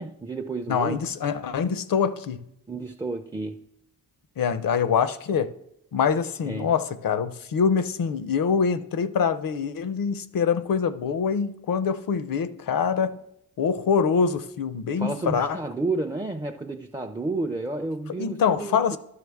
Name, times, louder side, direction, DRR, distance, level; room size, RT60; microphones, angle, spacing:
voice 1, 0.0-1.0 2.7-3.6 6.4-6.7 15.0-19.0, right 2 dB, 10° right, 0.4 m, -31 dB
voice 2, 0.7-2.4 4.4-5.5 5.9-13.2 13.6-15.6 18.2-19.0, left 6 dB, 60° left, 0.6 m, -24 dB
11.0 x 6.0 x 3.5 m
cardioid pair, 60°, 37 cm